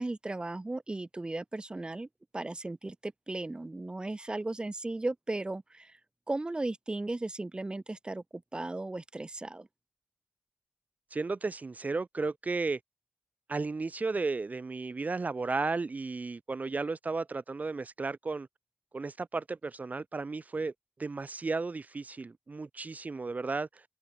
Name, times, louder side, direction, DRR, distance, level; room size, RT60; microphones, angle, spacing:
voice 1, 0.0-2.1 2.3-5.9 6.3-8.2 8.5-9.7, right 2 dB, 20° right, 1.6 m, -36 dB
voice 2, 11.1-12.8 13.5-18.5 18.9-20.7 21.0-23.8, right 3 dB, 35° right, 1.6 m, -34 dB
wide cardioid pair, 90°, 4 cm